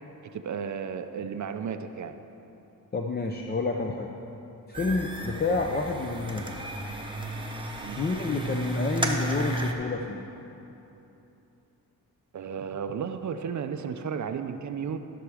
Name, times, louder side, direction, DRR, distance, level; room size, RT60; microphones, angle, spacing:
voice 1, 0.3-2.2 7.8-8.0 12.3-15.0, right 7 dB, 50° right, 8 dB, 0.5 m, -33 dB
voice 2, 2.9-4.1 4.7-6.7 8.0-10.2, left 3 dB, 25° left, 2 dB, 0.6 m, -29 dB
sound 1, 4.7-9.7, right 2 dB, 15° right, 1.0 m, -33 dB
14.5 x 6.0 x 4.9 m, 3.0 s
cardioid pair, 100°, 36 cm